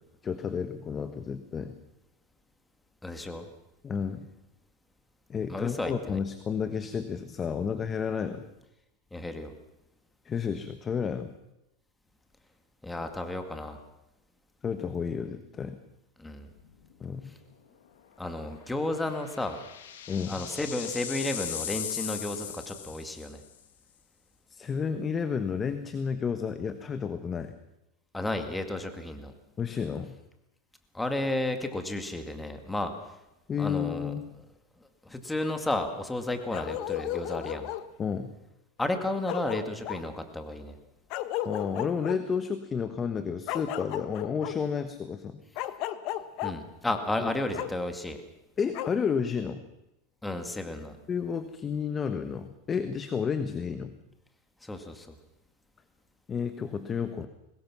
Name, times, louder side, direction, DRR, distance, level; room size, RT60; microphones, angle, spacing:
voice 1, 0.2-1.7 3.8-4.3 5.3-8.4 10.2-11.3 14.6-15.8 17.0-17.3 20.1-20.4 24.5-27.5 29.6-30.1 33.5-34.2 38.0-38.3 41.4-45.4 47.2-47.3 48.6-49.6 51.1-53.9 56.3-57.3, left 6 dB, 20° left, 10 dB, 1.2 m, -31 dB
voice 2, 3.0-3.4 5.5-6.2 9.1-9.5 12.8-13.8 16.2-16.5 18.2-19.6 20.3-23.4 28.1-29.3 30.9-32.9 33.6-34.1 35.1-37.7 38.8-40.8 46.4-48.2 50.2-51.0 54.6-55.1, left 2 dB, 5° left, 6 dB, 2.0 m, -32 dB
sound 1, 16.6-16.9 17.3-17.4 18.8-23.5, left 9 dB, 90° left, 2.6 m, -38 dB
Bark, 36.5-37.9 38.9-39.0 39.3-40.0 41.1-42.2 43.5-44.5 45.6-46.5 47.5-47.7 48.7-48.9, left 13 dB, 50° left, 1.3 m, -34 dB
23.0 x 20.5 x 6.1 m, 0.89 s
supercardioid pair, 140°, 0 cm